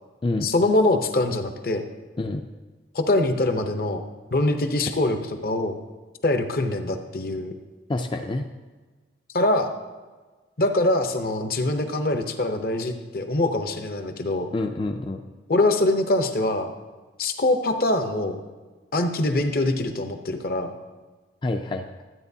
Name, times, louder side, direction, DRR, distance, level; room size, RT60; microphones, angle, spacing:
voice 1, 0.4-1.8 2.9-5.8 6.2-7.5 9.3-9.7 10.6-14.5 15.5-16.7 17.2-18.4 18.9-20.7, left 2 dB, 50° left, 7 dB, 0.7 m, -23 dB
voice 2, 7.9-8.5 14.5-15.2 21.4-22.0, left 2 dB, 25° left, 4 dB, 0.3 m, -27 dB
12.5 x 8.7 x 2.7 m, 1.3 s
head